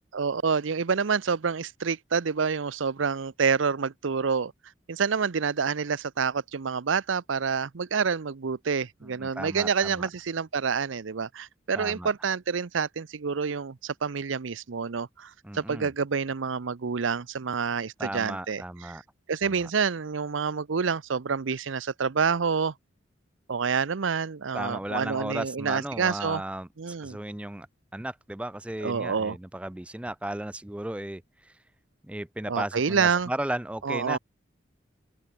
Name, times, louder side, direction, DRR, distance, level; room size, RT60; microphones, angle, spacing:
voice 1, 0.1-4.5 4.9-18.6 19.3-22.7 23.5-26.4 26.8-27.2 28.8-29.4 32.5-33.3 33.8-34.2, right 5 dB, 85° right, 0.6 m, -28 dB
voice 2, 9.0-10.1 11.8-12.1 15.4-15.9 18.0-19.0 19.4-19.7 24.5-27.7 27.9-31.6 32.0-34.2, right 1 dB, 5° right, 0.4 m, -35 dB
open air
head